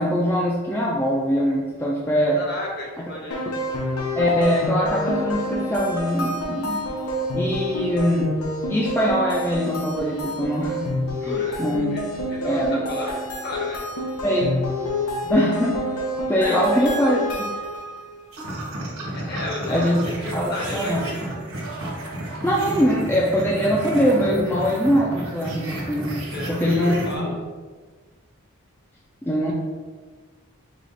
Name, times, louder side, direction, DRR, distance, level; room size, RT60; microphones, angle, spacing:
voice 1, 0.0-2.4 4.2-6.8 7.3-8.4 8.7-10.9 11.2-12.0 12.4-12.8 14.2-14.6 15.2-15.7 16.3-17.2 19.7-20.0 20.3-21.3 22.4-26.1 26.5-27.3 29.2-29.5, equal, 10° left, -4 dB, 0.3 m, -22 dB
voice 2, 2.3-3.5 7.6-7.8 11.2-11.6 11.9-12.0 12.3-13.9 16.4-17.1 19.1-19.8 20.2-21.2 26.2-27.4, left 1 dB, 45° left, -2 dB, 1.0 m, -33 dB
sound 1, 3.3-18.0, left 1 dB, 85° left, 0.7 m, -28 dB
sound 2, 18.3-27.1, right 1 dB, 70° right, 1.3 m, -32 dB
4.8 x 2.4 x 3.8 m, 1.4 s
head